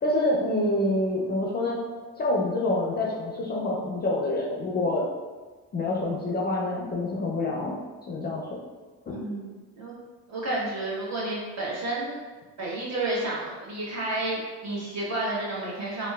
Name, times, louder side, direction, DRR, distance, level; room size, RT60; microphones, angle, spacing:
voice 1, 0.0-1.8 2.2-5.1 5.7-7.8 8.1-8.6 9.1-9.2, left 2 dB, 25° left, -3 dB, 0.4 m, -27 dB
voice 2, 9.1-9.9 10.3-12.2 12.6-16.1, right 2 dB, 45° right, -5 dB, 1.0 m, -31 dB
2.9 x 2.1 x 2.2 m, 1.3 s
cardioid pair, 85°, 36 cm